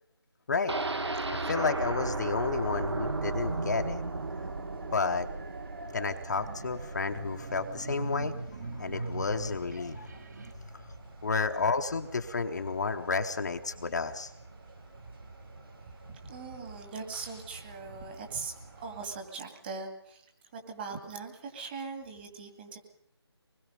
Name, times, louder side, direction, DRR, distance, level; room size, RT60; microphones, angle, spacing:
sound 1, 0.7-8.6 8.9-9.0 9.4-9.5, right 2 dB, 75° right, 2.0 m, -36 dB
voice 1, 1.5-4.0 4.9-5.3 5.9-8.3 8.6-10.2 11.2-14.3, left 4 dB, 40° left, 5 dB, 1.0 m, -31 dB
sound 2, 2.0-19.2, right 3 dB, 55° right, 6.5 m, -50 dB
sound 3, 2.1-10.5, right 3 dB, 40° right, 1.8 m, -41 dB
voice 2, 15.9-18.5 18.8-20.2 20.5-22.8, right 4 dB, 20° right, 4 dB, 2.3 m, -40 dB
24.5 x 20.5 x 5.3 m, 0.73 s
figure-of-eight pair, 165°, 14 cm